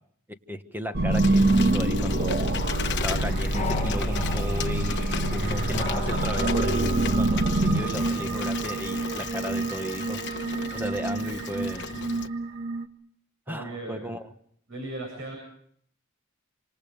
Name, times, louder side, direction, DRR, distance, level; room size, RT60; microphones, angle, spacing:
voice 1, 0.3-2.6 2.9-10.2 10.7-11.9 13.5-14.3, equal, 10° right, 8 dB, 1.4 m, -35 dB
sound 1, 0.9-12.9, right 2 dB, 50° right, 1.4 m, -26 dB
Bicycle, 1.1-12.3, left 6 dB, 55° left, 1.2 m, -36 dB
sound 2, 1.2-6.6, left 5 dB, 35° left, 1.4 m, -39 dB
voice 2, 13.5-14.1 14.7-15.4, right 2 dB, 65° right, 2 dB, 7.6 m, -36 dB
27.5 x 26.5 x 5.1 m, 0.65 s
head